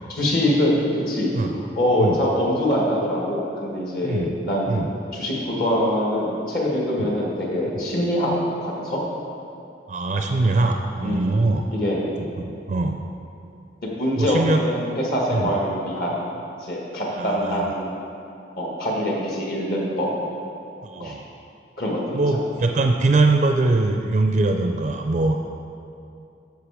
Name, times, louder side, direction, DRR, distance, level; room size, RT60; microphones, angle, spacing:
voice 1, 0.1-4.8 5.1-8.3 8.6-9.0 11.0-11.4 11.7-12.0 14.0-16.2 16.6-18.0 18.6-20.1 21.0-21.1 21.8-22.2, left 1 dB, 55° left, -3 dB, 1.6 m, -24 dB
voice 2, 9.9-11.6 12.2-13.0 14.2-14.6 15.3-15.5 17.1-17.7 20.8-21.2 22.1-25.4, right 2 dB, 45° right, 4 dB, 0.4 m, -22 dB
8.1 x 6.4 x 4.9 m, 2.6 s
head